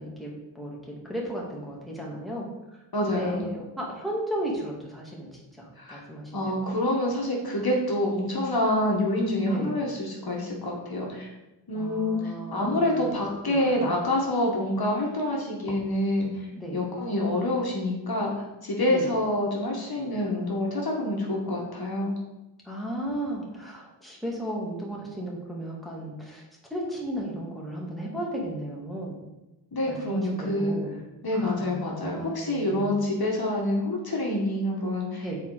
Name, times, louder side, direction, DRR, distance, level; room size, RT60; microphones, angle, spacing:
voice 1, 0.0-2.5 3.1-6.5 9.5-9.8 11.7-13.1 13.5-13.9 16.6-16.8 18.9-19.1 22.6-26.4 26.7-29.2 29.9-31.0 31.3-33.0 35.2-35.4, right 1 dB, ahead, -3 dB, 2.3 m, -35 dB
voice 2, 2.9-3.5 5.8-6.0 6.3-11.3 11.7-16.3 16.7-22.1 29.7-30.7 31.2-35.3, left 1 dB, 55° left, -2 dB, 1.6 m, -27 dB
6.8 x 4.5 x 4.9 m, 1.0 s
cardioid pair, 45°, 43 cm